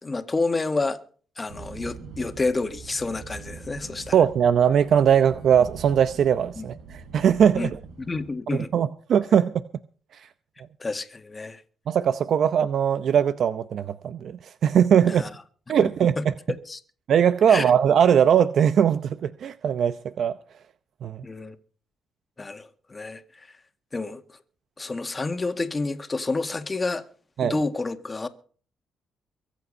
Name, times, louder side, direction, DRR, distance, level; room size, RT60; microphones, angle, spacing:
voice 1, 0.0-1.0 1.4-4.1 6.6-6.7 7.5-7.7 8.0-8.7 10.8-11.6 15.0-15.3 15.8-16.8 17.5-17.7 21.2-21.5 22.4-23.5 23.9-24.4 24.8-27.0 27.4-28.3, left 3 dB, 25° left, 1.7 m, -29 dB
sound 1, 1.5-8.3, right 5 dB, 85° right, 4.1 m, -43 dB
voice 2, 4.1-7.8 8.5-9.6 10.1-10.3 11.9-15.2 15.7-16.3 17.1-20.4 21.0-21.3 27.4-27.6, right 8 dB, 65° right, 0.7 m, -20 dB
23.5 x 8.2 x 5.4 m
cardioid pair, 90°, 0 cm